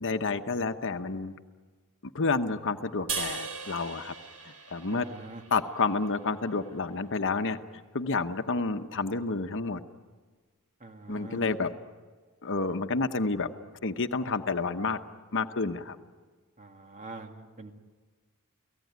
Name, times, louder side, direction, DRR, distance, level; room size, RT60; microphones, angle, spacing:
voice 1, 0.0-1.3 2.1-4.1 4.7-5.1 5.5-7.6 7.9-9.8 11.1-11.7 12.4-13.5 13.8-15.0 15.3-16.0, left 4 dB, 60° left, 8 dB, 1.0 m, -29 dB
sound 1, 3.1-6.4, right 5 dB, 85° right, 3.7 m, -38 dB
voice 2, 4.8-5.4 10.8-11.4 16.6-17.7, right 3 dB, 35° right, 4 dB, 2.3 m, -44 dB
29.5 x 18.0 x 9.4 m, 1.5 s
head